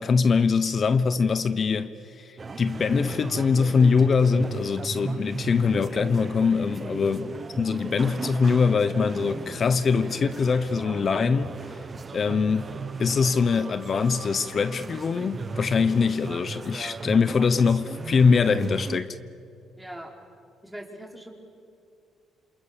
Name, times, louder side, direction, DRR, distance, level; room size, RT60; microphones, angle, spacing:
voice 1, 0.0-7.3 7.6-11.5 12.1-12.7 13.0-19.2, left 5 dB, 40° left, 1.0 m, -23 dB
sound 1, 2.4-19.0, right 4 dB, 30° right, 1.1 m, -37 dB
voice 2, 19.8-20.1 20.6-21.3, right 1 dB, 5° right, 4.2 m, -41 dB
28.0 x 27.0 x 6.9 m
cardioid pair, 115°, 0 cm